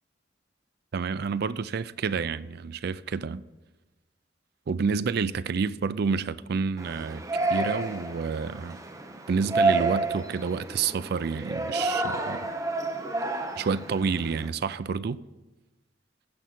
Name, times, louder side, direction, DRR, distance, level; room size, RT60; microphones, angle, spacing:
voice 1, 0.9-3.4 4.7-7.2 7.5-8.8 9.3-12.5 13.6-15.2, right 5 dB, 55° right, 0.4 m, -29 dB
Yell, 6.8-14.5, right 3 dB, 20° right, 0.9 m, -30 dB
15.5 x 5.6 x 5.9 m
head